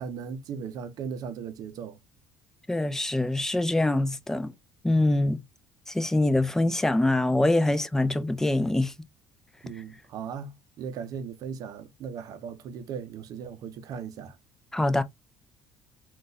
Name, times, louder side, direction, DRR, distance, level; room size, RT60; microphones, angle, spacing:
voice 1, 0.0-2.0 9.6-14.4, right 6 dB, 60° right, 0.6 m, -37 dB
voice 2, 2.7-4.5 4.8-5.4 5.9-8.9 14.7-15.0, left 1 dB, 5° left, 0.5 m, -24 dB
3.7 x 2.4 x 2.6 m
cardioid pair, 105°, 7 cm